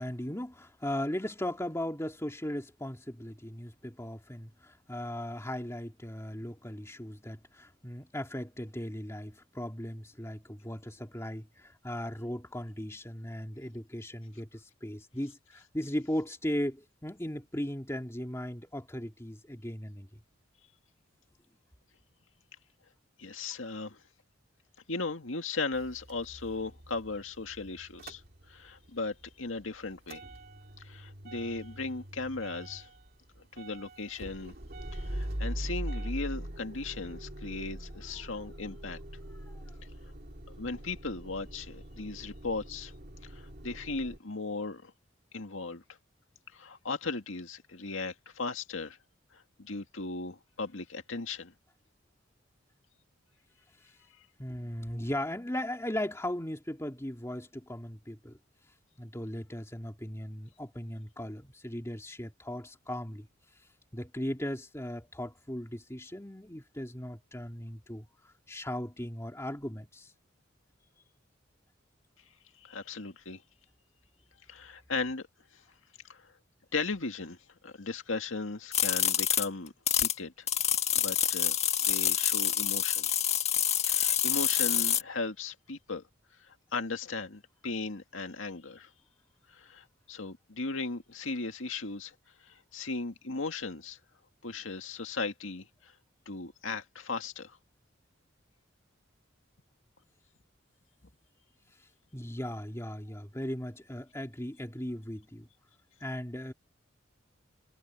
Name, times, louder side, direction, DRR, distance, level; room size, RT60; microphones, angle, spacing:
voice 1, 0.0-20.2 39.5-39.6 54.4-58.4 59.0-63.3 63.9-68.1 68.5-70.1 102.1-105.5 106.0-106.5, left 1 dB, 15° left, 2.5 m, -37 dB
voice 2, 23.2-24.0 24.9-28.2 28.5-30.2 30.8-32.9 33.5-34.5 34.9-39.0 40.6-42.9 43.2-44.9 45.3-45.8 46.5-49.0 49.3-51.5 72.6-73.4 74.5-75.3 75.5-75.6 76.1-76.3 76.7-77.4 77.6-79.7 80.0-80.5 81.0-81.6 81.8-83.1 83.8-86.0 86.4-88.9 89.5-92.1 92.4-94.0 94.4-95.9 96.3-97.6, left 3 dB, 85° left, 2.1 m, -37 dB
Motor vehicle (road) / Engine starting / Idling, 25.7-28.9 29.2-44.2, right 1 dB, 50° right, 2.9 m, -42 dB
sound 1, 78.7-80.1 80.5-85.0, left 9 dB, 35° left, 1.5 m, -27 dB
head